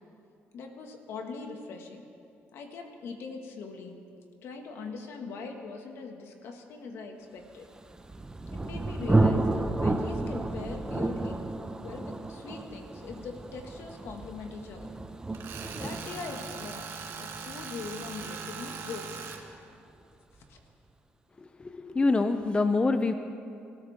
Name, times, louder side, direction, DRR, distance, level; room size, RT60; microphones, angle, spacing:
voice 1, 0.5-2.1 2.5-4.0 4.4-7.7 8.5-11.4 11.8-14.9 15.8-16.9 17.2-19.3 20.5-20.6, left 4 dB, 75° left, 3 dB, 1.9 m, -41 dB
Thunder, 7.8-19.3, right 2 dB, 15° right, 0.9 m, -31 dB
Tools, 15.3-19.4, right 6 dB, 70° right, 1.7 m, -40 dB
voice 2, 21.7-23.1, left 3 dB, 25° left, 8 dB, 0.6 m, -25 dB
25.5 x 13.5 x 3.6 m, 2.5 s
cardioid pair, 90°, 4 cm